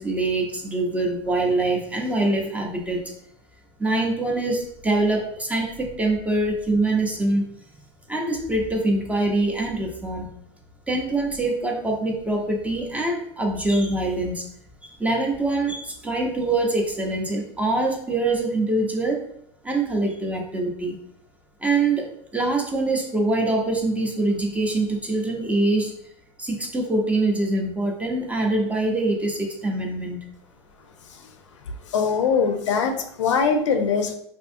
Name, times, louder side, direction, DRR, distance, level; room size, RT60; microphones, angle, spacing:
voice 1, 0.0-3.1 3.8-7.5 8.1-10.3 10.9-14.4 14.8-19.2 19.6-20.9 21.6-25.9 26.4-30.2, right 2 dB, 10° right, 0 dB, 0.5 m, -24 dB
voice 2, 31.9-34.1, left 5 dB, 80° left, 5 dB, 0.4 m, -22 dB
2.5 x 2.4 x 2.5 m, 0.71 s
hypercardioid pair, 105°, 15 cm